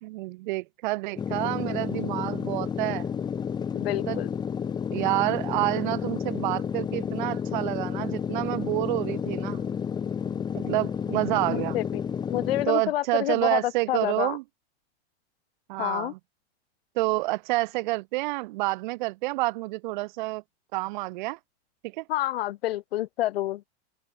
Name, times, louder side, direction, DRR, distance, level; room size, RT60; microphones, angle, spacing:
voice 1, 0.0-3.1 4.1-4.2 4.9-9.6 10.5-11.8 12.7-14.4 15.7-16.2 16.9-20.4 20.7-21.4 21.9-22.0, right 21 dB, 45° right, 3.3 m, -28 dB
sound 1, 1.2-12.7, left 7 dB, 10° left, 3.0 m, -31 dB
voice 2, 3.7-4.3 11.5-12.0 12.3-14.4 15.8-16.1 22.1-23.6, left 15 dB, 60° left, 3.7 m, -28 dB
open air
supercardioid pair, 170°, 34 cm